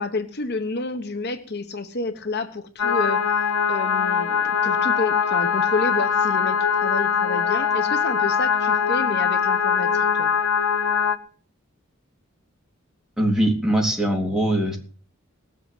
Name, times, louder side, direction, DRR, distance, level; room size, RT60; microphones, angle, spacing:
voice 1, 0.0-10.3, left 3 dB, 55° left, 9 dB, 1.1 m, -29 dB
sound 1, 2.8-11.2, left 6 dB, 85° left, 1.1 m, -22 dB
voice 2, 13.2-14.8, right 1 dB, 5° right, 0 dB, 3.6 m, -21 dB
18.5 x 7.8 x 7.8 m, 0.42 s
head